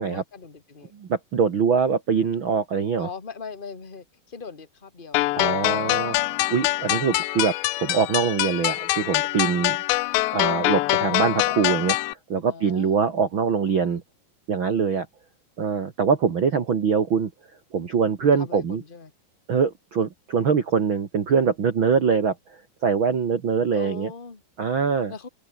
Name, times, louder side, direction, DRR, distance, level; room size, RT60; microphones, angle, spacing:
voice 1, 0.0-0.9 3.0-5.5 9.3-9.5 12.4-13.0 18.2-19.1 21.8-22.2 23.7-24.4 25.1-25.3, left 5 dB, 25° left, 1.0 m, -40 dB
voice 2, 0.9-3.1 5.3-6.2 6.5-9.8 10.3-14.0 14.5-15.0 15.6-17.3 17.7-18.8 19.5-22.3 22.8-24.1 24.6-25.1, right 6 dB, 65° right, 1.2 m, -23 dB
sound 1, 5.1-12.1, left 19 dB, 80° left, 3.0 m, -24 dB
open air
omnidirectional pair, 5.2 m